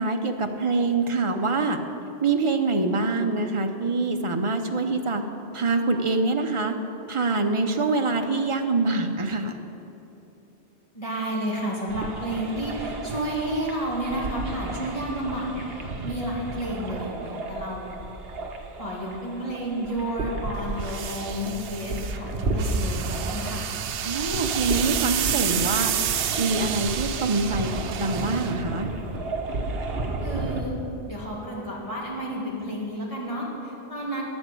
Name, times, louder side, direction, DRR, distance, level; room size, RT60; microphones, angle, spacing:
voice 1, 0.0-1.8 2.2-5.2 5.5-6.7 7.1-9.6 24.0-25.9 26.4-28.9, right 3 dB, 35° right, 5 dB, 0.6 m, -25 dB
voice 2, 10.9-15.6 16.0-17.9 18.8-23.6 30.2-30.7 31.1-34.3, right 1 dB, 30° left, -6 dB, 2.1 m, -31 dB
sound 1, 11.9-30.6, right 2 dB, 60° right, 1.2 m, -33 dB
sound 2, 20.5-29.2, right 9 dB, 85° right, 0.9 m, -30 dB
11.0 x 6.1 x 8.2 m, 2.9 s
omnidirectional pair, 1.1 m